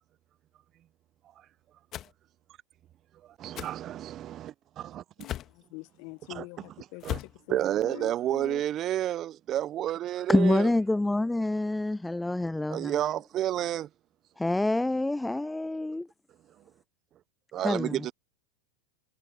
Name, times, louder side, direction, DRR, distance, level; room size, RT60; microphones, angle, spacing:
sound 1, 1.9-2.1 3.5-3.7 5.2-5.6 7.0-7.4, left 12 dB, 40° left, 1.7 m, -36 dB
voice 1, 3.4-5.0 6.3-6.4 7.0-7.2 7.5-10.7 12.7-13.9 17.5-18.1, right 12 dB, 40° right, 0.8 m, -30 dB
voice 2, 5.2-8.6, left 28 dB, 55° left, 1.1 m, -45 dB
voice 3, 10.3-13.1 14.4-16.1 17.6-18.1, left 2 dB, 5° left, 0.4 m, -27 dB
hypercardioid pair, 95°, 0 cm